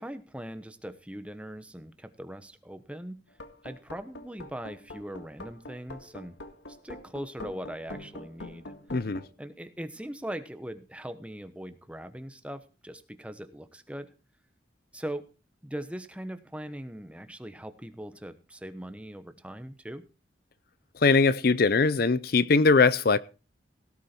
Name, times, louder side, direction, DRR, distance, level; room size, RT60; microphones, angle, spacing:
voice 1, 0.0-3.2 3.6-6.4 6.7-8.7 9.4-14.1 14.9-15.2 15.6-20.0, right 1 dB, 5° right, 10 dB, 1.1 m, -40 dB
sound 1, 3.3-9.3, left 1 dB, 85° left, 1.9 m, -44 dB
voice 2, 8.9-9.2 21.0-23.2, left 4 dB, 55° left, 17 dB, 0.6 m, -21 dB
17.5 x 8.5 x 4.4 m, 0.33 s
head